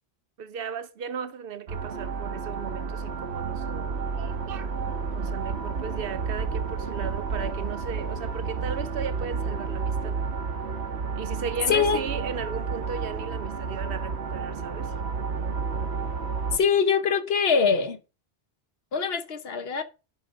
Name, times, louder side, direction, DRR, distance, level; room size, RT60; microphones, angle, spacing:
voice 1, 0.4-4.7 5.1-10.2 11.2-14.9, right 7 dB, 65° right, 0.9 m, -36 dB
sound 1, 1.7-16.6, right 5 dB, 90° right, 1.1 m, -31 dB
voice 2, 11.7-12.0 16.5-18.0 18.9-19.8, left 6 dB, 70° left, 1.0 m, -23 dB
11.0 x 5.0 x 3.6 m
omnidirectional pair, 1.1 m